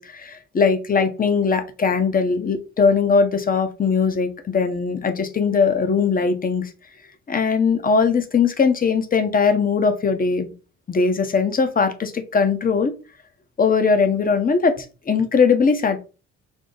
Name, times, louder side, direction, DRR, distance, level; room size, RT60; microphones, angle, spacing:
voice 1, 0.0-6.7 7.3-10.5 10.9-12.9 13.6-16.0, left 5 dB, 30° left, 9 dB, 0.8 m, -20 dB
5.4 x 2.1 x 3.8 m, 0.33 s
cardioid pair, 90°, 30 cm